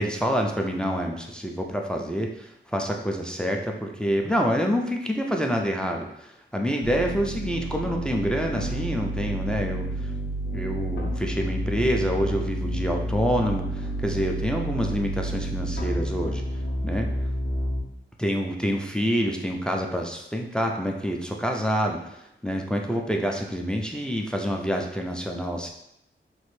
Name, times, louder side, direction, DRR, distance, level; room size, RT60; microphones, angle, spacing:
voice 1, 0.0-10.1 10.5-16.4 16.8-17.1 18.2-25.7, equal, 5° left, 1 dB, 0.3 m, -27 dB
sound 1, 6.8-17.8, right 1 dB, 65° left, 0.6 m, -30 dB
3.1 x 2.5 x 3.1 m, 0.78 s
wide cardioid pair, 145°, 21 cm